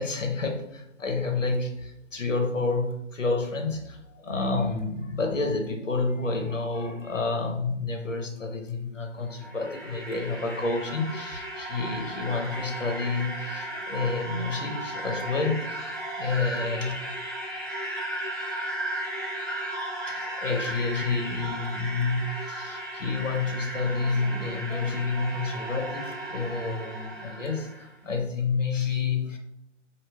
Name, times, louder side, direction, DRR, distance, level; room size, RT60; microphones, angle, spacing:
voice 1, 0.0-17.0 20.0-29.4, left 3 dB, 75° left, 2 dB, 1.0 m, -29 dB
sound 1, 9.2-27.9, right 1 dB, 15° right, 0.6 m, -35 dB
4.4 x 2.8 x 2.3 m, 0.80 s
figure-of-eight pair, 155°, 38 cm